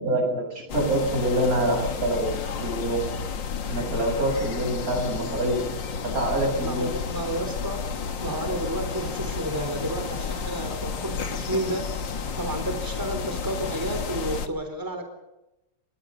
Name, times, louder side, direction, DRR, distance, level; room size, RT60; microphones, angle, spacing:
voice 1, 0.0-3.1 3.7-5.6 6.0-6.9, right 1 dB, 40° right, 2 dB, 7.9 m, -26 dB
sound 1, 0.7-14.5, left 6 dB, 60° left, 2.2 m, -32 dB
voice 2, 6.6-7.9 8.2-12.0 12.4-15.1, right 1 dB, 10° right, 6 dB, 3.8 m, -31 dB
29.5 x 24.0 x 5.5 m, 0.95 s
omnidirectional pair, 2.3 m